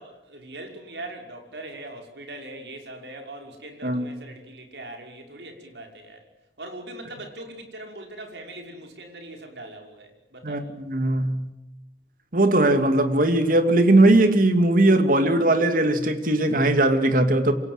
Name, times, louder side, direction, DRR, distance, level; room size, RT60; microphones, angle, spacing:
voice 1, 0.0-6.2 6.6-10.7, right 1 dB, 75° right, 5.7 m, -41 dB
voice 2, 10.4-11.4 12.3-17.5, right 2 dB, 50° right, 2.6 m, -19 dB
27.0 x 27.0 x 8.0 m
head